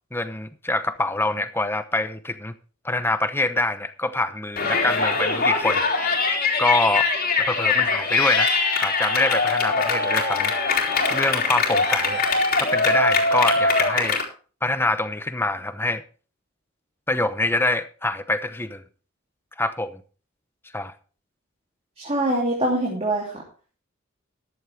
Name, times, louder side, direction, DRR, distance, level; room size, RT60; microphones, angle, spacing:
voice 1, 0.1-2.5 2.8-5.8 6.6-7.1 7.4-8.5 8.8-10.5 11.1-12.2 12.6-14.2 14.6-16.0 17.1-18.8 19.6-20.0 20.7-20.9, left 2 dB, 10° left, 0.9 m, -25 dB
Yell, 4.6-14.2, left 4 dB, 45° left, 3.4 m, -22 dB
voice 2, 22.0-23.4, right 1 dB, 30° right, 2.8 m, -24 dB
14.0 x 11.5 x 3.4 m
head